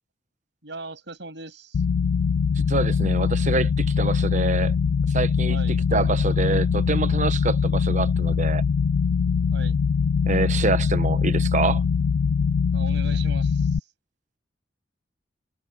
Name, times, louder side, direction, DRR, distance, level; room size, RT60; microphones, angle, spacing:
voice 1, 0.6-1.8 5.5-5.8 9.5-9.8 12.7-13.9, right 3 dB, 65° right, 8.0 m, -39 dB
sound 1, 1.7-13.8, left 5 dB, 80° left, 0.4 m, -22 dB
voice 2, 2.6-4.7 5.1-5.6 5.9-8.6 10.3-11.8, right 3 dB, 40° right, 1.0 m, -26 dB
head